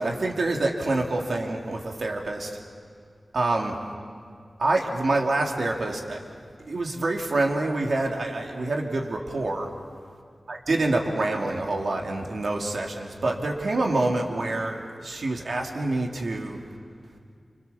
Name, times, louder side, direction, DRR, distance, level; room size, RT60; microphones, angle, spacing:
voice 1, 0.0-2.5 3.3-3.7 4.6-6.2 6.6-9.7 10.5-16.6, right 2 dB, 80° right, 1 dB, 3.2 m, -26 dB
30.0 x 27.5 x 7.3 m, 2.2 s
wide cardioid pair, 80°, 0 cm